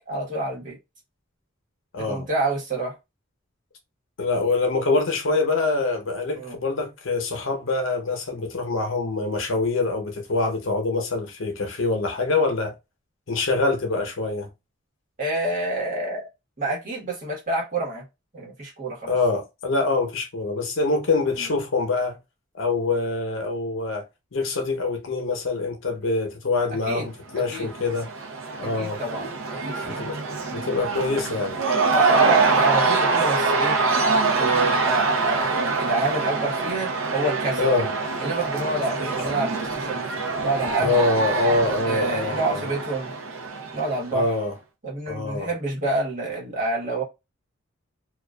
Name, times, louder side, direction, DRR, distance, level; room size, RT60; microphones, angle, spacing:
voice 1, 0.1-0.8 2.1-2.9 6.4-6.6 15.2-16.2 16.6-18.0 18.3-19.1 21.4-21.5 26.8-27.7 28.8-30.0 31.9-33.8 34.3-37.7 38.2-40.1 40.4-41.0 41.9-43.1 43.7-44.3 44.8-47.0, right 2 dB, 40° right, 1.1 m, -28 dB
voice 2, 1.9-2.3 4.2-12.7 13.3-14.5 19.1-22.2 22.5-24.0 24.3-28.1 28.6-29.0 29.8-30.2 30.5-31.6 37.6-37.9 39.2-39.3 40.8-42.6 44.1-44.5 45.1-45.5, left 3 dB, 75° left, 0.7 m, -25 dB
Cheering / Crowd, 27.4-44.2, right 4 dB, 80° right, 0.6 m, -25 dB
2.4 x 2.3 x 2.2 m
head